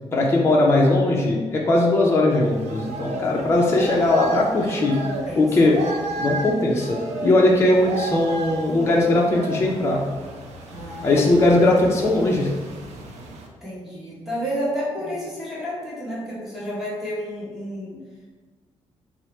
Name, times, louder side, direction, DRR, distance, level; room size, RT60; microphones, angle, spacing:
voice 1, 0.1-5.0 5.4-5.8 6.2-10.0 11.0-12.5, left 2 dB, 25° left, -2 dB, 0.5 m, -19 dB
sound 1, 2.3-13.5, right 2 dB, 85° right, 0.6 m, -34 dB
voice 2, 4.7-5.9 10.7-11.4 13.6-17.9, equal, 5° right, -8 dB, 1.0 m, -31 dB
4.5 x 2.0 x 4.2 m, 1.4 s
cardioid pair, 145°, 11 cm